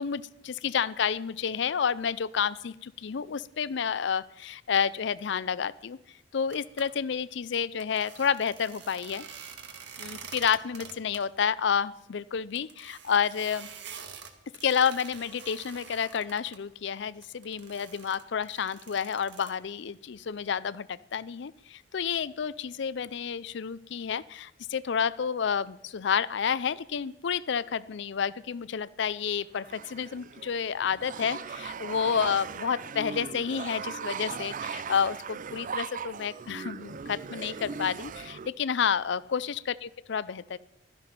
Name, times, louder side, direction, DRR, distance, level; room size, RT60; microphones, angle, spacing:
voice 1, 0.0-6.0 6.3-9.2 10.0-13.7 14.6-39.6 40.1-40.6, left 7 dB, 70° left, 19 dB, 0.5 m, -30 dB
sound 1, 6.5-6.8 7.8-11.2 11.5-11.6 11.9-12.0 12.5-16.6 17.2-19.5, right 7 dB, 65° right, 1.9 m, -46 dB
sound 2, 29.5-38.5, right 6 dB, 45° right, 0.5 m, -39 dB
16.0 x 13.0 x 5.8 m, 0.82 s
head